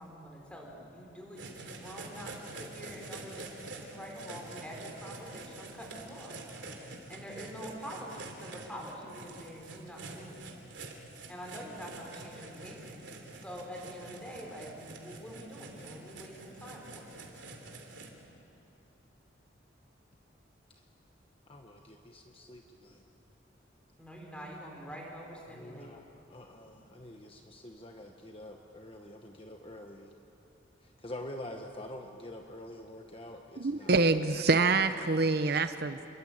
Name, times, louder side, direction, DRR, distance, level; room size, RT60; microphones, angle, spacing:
voice 1, 0.0-6.4 6.7-10.6 11.3-13.0 13.4-17.1 24.0-26.0, equal, 5° left, -1 dB, 5.0 m, -46 dB
sound 1, 1.4-18.1, right 3 dB, 70° right, 3.2 m, -47 dB
voice 2, 21.5-23.0 25.5-26.0 26.3-30.1 31.0-33.9 34.2-34.3, left 1 dB, 30° left, 3 dB, 1.2 m, -46 dB
voice 3, 33.6-36.1, right 3 dB, 55° right, 10 dB, 0.8 m, -26 dB
28.5 x 22.5 x 8.8 m, 2.7 s
head